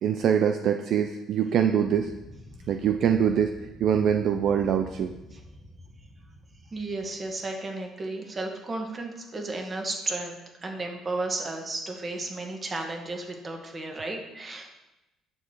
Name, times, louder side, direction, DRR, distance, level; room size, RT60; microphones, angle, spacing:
voice 1, 0.0-2.1 2.7-3.5 3.8-5.1, right 8 dB, 60° right, 6 dB, 0.5 m, -23 dB
sound 1, 1.8-7.6, left 1 dB, ahead, 2.3 m, -48 dB
voice 2, 6.7-14.7, right 2 dB, 25° right, 2 dB, 1.8 m, -33 dB
9.7 x 7.1 x 4.6 m, 0.96 s
cardioid pair, 120°, 0 cm